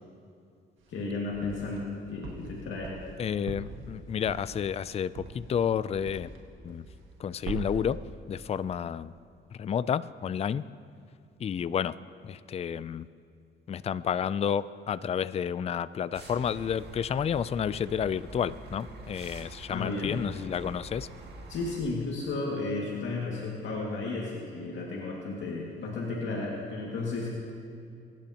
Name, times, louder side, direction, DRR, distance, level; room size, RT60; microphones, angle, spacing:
sound 1, 0.8-1.8 2.2-6.4 6.7-7.2 7.4-7.9, right 5 dB, 80° right, 1.6 m, -41 dB
voice 1, 0.9-2.9 19.7-20.2 21.5-27.5, left 3 dB, 75° left, -4 dB, 2.1 m, -33 dB
voice 2, 3.2-6.3 6.6-6.9 7.2-8.0 8.3-9.1 9.5-10.6 11.4-11.9 12.2-13.1 13.7-21.1, left 8 dB, 30° left, 16 dB, 0.4 m, -30 dB
sound 2, 16.1-21.8, right 2 dB, 55° right, 2.0 m, -46 dB
22.0 x 10.5 x 2.9 m, 2.5 s
cardioid pair, 90°, 20 cm